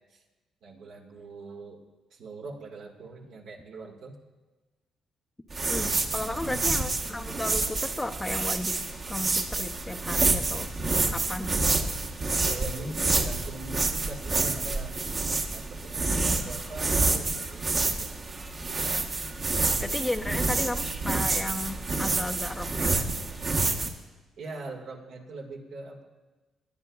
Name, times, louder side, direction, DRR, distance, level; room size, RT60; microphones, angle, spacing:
voice 1, 0.6-1.8 2.1-4.2 6.2-6.9 12.2-15.0 15.5-18.1 24.4-26.0, right 3 dB, 75° right, 0 dB, 1.7 m, -42 dB
sound 1, 5.5-23.9, right 3 dB, 35° right, 1.0 m, -28 dB
voice 2, 5.7-8.8 9.1-10.7 11.1-11.6 19.8-23.3, left 1 dB, 10° left, 6 dB, 0.5 m, -34 dB
19.5 x 10.5 x 2.3 m, 1.3 s
cardioid pair, 105°, 0 cm